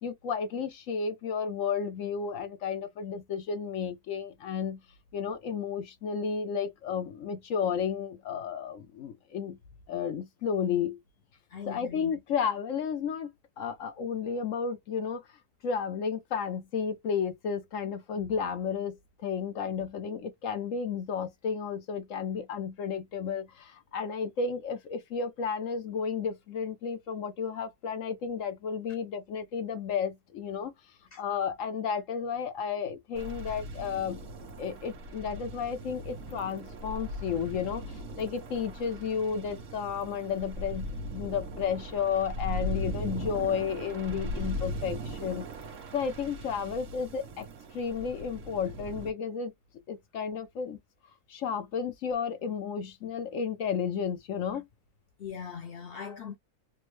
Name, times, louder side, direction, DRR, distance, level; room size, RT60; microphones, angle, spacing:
voice 1, 0.0-4.8 5.1-9.6 9.9-11.0 11.7-13.3 13.6-15.2 15.6-30.7 31.2-34.2 34.6-40.9 41.1-45.4 45.9-47.5 47.7-49.5 49.9-50.8 51.3-54.7, left 6 dB, 65° left, 0.9 m, -32 dB
voice 2, 11.5-12.1 31.1-31.2 55.2-56.4, left 7 dB, 80° left, 0.5 m, -40 dB
sound 1, 33.1-49.1, equal, 60° right, 1.1 m, -39 dB
3.4 x 2.2 x 3.1 m
omnidirectional pair, 1.7 m